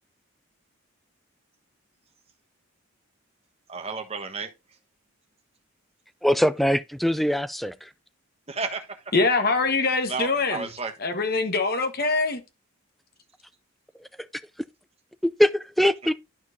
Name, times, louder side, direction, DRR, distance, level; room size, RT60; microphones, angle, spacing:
voice 1, 3.7-4.8 8.5-9.1 9.8-10.9, right 4 dB, 30° right, 1.2 m, -33 dB
voice 2, 6.2-7.9 15.4-16.1, equal, ahead, 0.4 m, -22 dB
voice 3, 9.1-10.7 11.0-12.4, left 3 dB, 45° left, 1.3 m, -23 dB
12.0 x 4.5 x 2.7 m
head